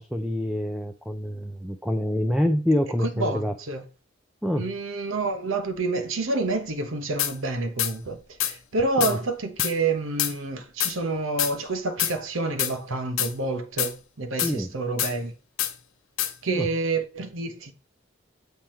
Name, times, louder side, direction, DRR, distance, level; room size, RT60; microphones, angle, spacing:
voice 1, 0.0-3.5 4.4-4.7 9.0-9.2 14.4-14.7 16.5-16.7, left 1 dB, ahead, 0.4 m, -26 dB
voice 2, 3.0-3.8 4.5-15.3 16.4-17.7, right 3 dB, 80° right, 1.0 m, -28 dB
sound 1, 7.2-7.3 7.8-7.9 8.4-8.5 9.0-9.1 9.6-9.7 10.2-10.3 10.8-10.9 11.4-11.5 12.0-12.1 12.6-12.7 13.2-13.3 13.8-13.9 14.4-14.5 15.0-15.1 15.6-15.7 16.2-16.3, left 12 dB, 90° left, 0.8 m, -25 dB
7.5 x 3.5 x 4.4 m
head